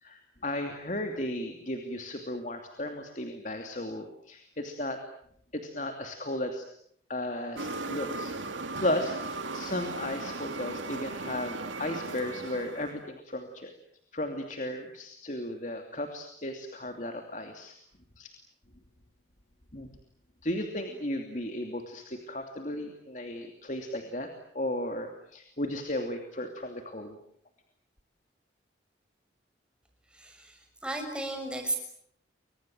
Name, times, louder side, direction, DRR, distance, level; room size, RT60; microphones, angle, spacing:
voice 1, 0.0-5.0 5.5-6.6 7.1-8.3 8.8-13.7 14.1-17.7 18.2-18.3 19.7-19.9 20.4-24.3 24.5-27.2, left 1 dB, 40° left, 5 dB, 2.8 m, -35 dB
sound 1, 7.6-13.0, right 3 dB, 90° right, 2.5 m, -37 dB
voice 2, 30.1-31.8, right 2 dB, 5° right, 4 dB, 6.2 m, -35 dB
30.0 x 24.5 x 7.8 m, 0.66 s
head